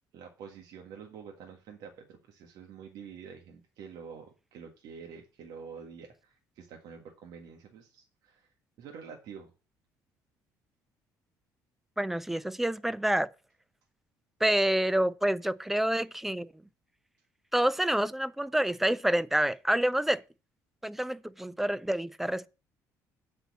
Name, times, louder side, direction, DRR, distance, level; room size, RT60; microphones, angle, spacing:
voice 1, 0.1-8.5 8.8-9.5, right 6 dB, 70° right, 1.6 m, -47 dB
voice 2, 12.0-13.3 14.4-16.5 17.5-20.2 20.8-22.5, right 1 dB, 5° right, 0.4 m, -28 dB
8.0 x 4.4 x 7.2 m
cardioid pair, 125°, 7 cm